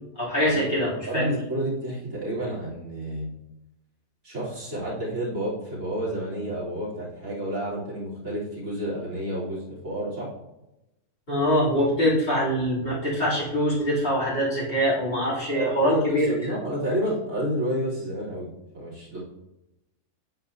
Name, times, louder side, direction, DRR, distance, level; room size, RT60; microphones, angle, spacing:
voice 1, 0.2-1.3 11.3-16.3, equal, 40° left, -8 dB, 3.3 m, -24 dB
voice 2, 1.1-3.3 4.2-10.3 15.5-19.2, right 1 dB, 65° right, -6 dB, 3.9 m, -30 dB
9.8 x 8.6 x 2.7 m, 0.93 s
omnidirectional pair, 1.6 m